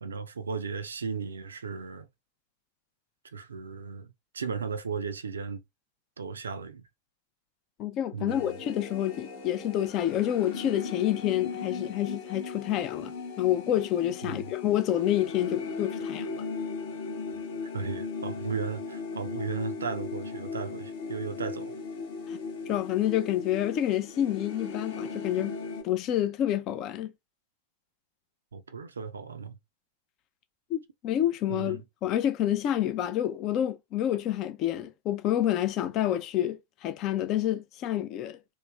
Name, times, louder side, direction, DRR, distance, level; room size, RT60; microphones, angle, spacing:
voice 1, 0.0-2.1 3.3-5.6 6.2-6.8 8.1-8.6 14.2-14.5 17.6-21.8 28.5-29.6 31.5-31.8, right 5 dB, 70° right, 0.3 m, -35 dB
voice 2, 7.8-16.4 22.3-22.4 22.7-25.5 25.8-27.1 30.7-38.4, left 12 dB, 35° left, 0.4 m, -28 dB
sound 1, 8.3-25.8, left 4 dB, 55° left, 0.9 m, -38 dB
3.1 x 2.1 x 2.3 m
figure-of-eight pair, 90°, 0 cm